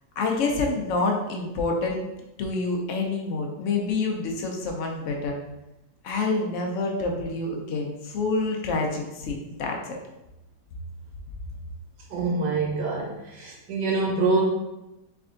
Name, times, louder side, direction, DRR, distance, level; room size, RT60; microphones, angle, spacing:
voice 1, 0.2-2.0 2.4-5.3 6.0-10.0, left 3 dB, 60° left, 1 dB, 0.9 m, -27 dB
voice 2, 12.1-14.4, right 3 dB, 70° right, -2 dB, 1.5 m, -25 dB
3.5 x 3.4 x 3.7 m, 0.96 s
omnidirectional pair, 1.9 m